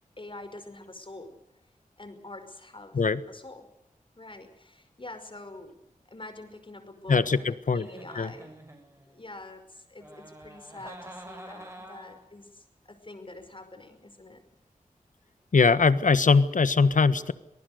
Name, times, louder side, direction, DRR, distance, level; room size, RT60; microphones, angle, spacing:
voice 1, 0.2-1.4 2.0-3.0 3.3-3.7 4.2-8.6 9.1-14.4, left 2 dB, 40° left, 9 dB, 5.3 m, -45 dB
voice 2, 7.1-7.9 8.2-8.3 15.5-17.3, left 4 dB, 70° left, 14 dB, 1.4 m, -21 dB
Giggle, 7.7-9.2 10.0-12.3, right 1 dB, 20° right, 6.6 m, -47 dB
26.0 x 19.0 x 6.6 m, 0.87 s
wide cardioid pair, 55°, 14 cm